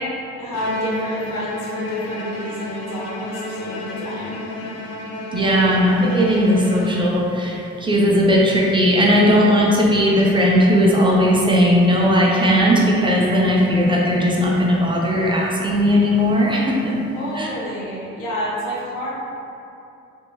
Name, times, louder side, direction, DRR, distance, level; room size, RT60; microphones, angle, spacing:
voice 1, 0.4-4.5 17.1-19.1, equal, 90° left, -6 dB, 0.9 m, -29 dB
Bowed string instrument, 0.5-7.5, left 2 dB, 55° left, 0.5 m, -31 dB
voice 2, 5.3-17.0 17.4-17.5, equal, 15° right, -3 dB, 0.5 m, -17 dB
2.6 x 2.6 x 3.0 m, 2.7 s
cardioid pair, 90°, 30 cm